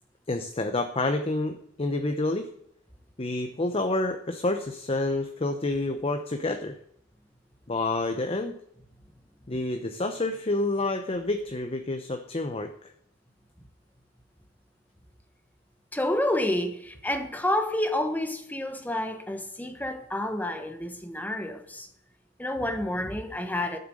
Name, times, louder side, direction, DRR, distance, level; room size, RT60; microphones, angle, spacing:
voice 1, 0.3-2.5 3.2-6.8 7.7-8.5 9.5-12.7, left 2 dB, 30° left, 0.8 m, -28 dB
voice 2, 15.9-21.9 22.4-23.8, left 1 dB, 10° left, 1.2 m, -29 dB
12.0 x 6.8 x 7.8 m
head